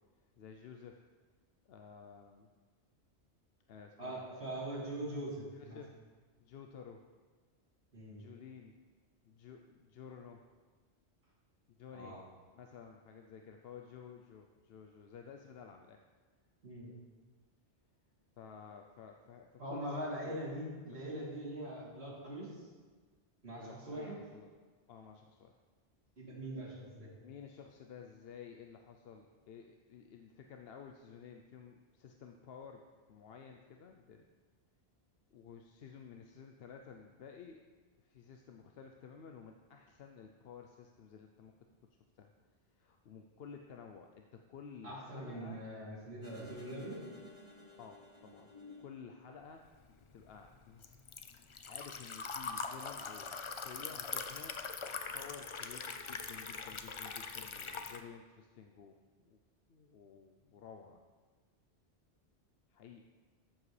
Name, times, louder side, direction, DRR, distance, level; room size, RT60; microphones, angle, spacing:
voice 1, 0.4-1.0 1.7-2.5 3.7-4.3 5.5-6.0 6.4-7.0 8.2-8.7 9.2-10.4 11.8-12.2 12.5-16.0 18.4-20.4 23.6-24.5 24.9-25.6 27.2-32.8 33.1-34.2 35.3-37.6 38.0-41.5 42.2-42.3 42.8-45.6 47.8-48.5 48.8-49.7 50.1-50.9 51.6-54.6 55.1-58.9 59.2-59.4 59.7-61.0 62.7-63.0, left 6 dB, 65° left, 3 dB, 0.8 m, -53 dB
voice 2, 4.0-5.8 7.9-8.2 11.9-12.2 16.6-16.9 19.6-22.7 23.4-24.2 26.2-27.1 44.8-47.1, right 1 dB, 65° right, -8 dB, 3.4 m, -42 dB
sound 1, 46.2-49.6, left 3 dB, 35° right, 2.1 m, -55 dB
Liquid, 49.7-58.0, left 5 dB, 50° left, 0.3 m, -42 dB
14.0 x 7.3 x 3.2 m, 1.4 s
omnidirectional pair, 1.2 m